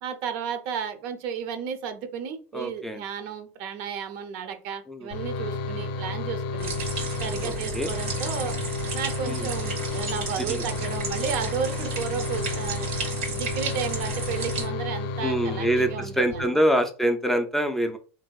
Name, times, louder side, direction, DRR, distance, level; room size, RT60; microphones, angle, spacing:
voice 1, 0.0-6.7 7.2-8.6 8.9-12.9 13.2-16.6, right 7 dB, 70° right, 8 dB, 0.5 m, -33 dB
voice 2, 2.5-3.0 4.9-5.1 7.4-7.9 9.2-9.5 10.4-10.6 15.2-18.0, equal, 5° left, 5 dB, 0.3 m, -25 dB
sound 1, 5.1-16.4, left 3 dB, 70° left, 0.5 m, -32 dB
sound 2, 6.6-14.6, right 5 dB, 90° right, 1.2 m, -34 dB
3.2 x 2.6 x 2.3 m, 0.37 s
supercardioid pair, 135°, 7 cm